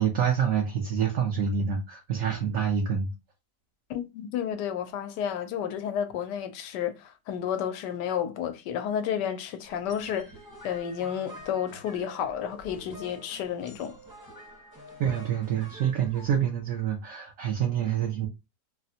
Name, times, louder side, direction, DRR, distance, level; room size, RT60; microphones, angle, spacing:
voice 1, 0.0-3.1 15.0-18.3, right 8 dB, 65° right, 0.9 m, -27 dB
voice 2, 3.9-10.3 10.6-14.0, left 9 dB, 85° left, 1.2 m, -31 dB
sound 1, 9.6-16.3, equal, 20° right, 0.5 m, -47 dB
4.0 x 2.1 x 2.7 m
omnidirectional pair, 1.8 m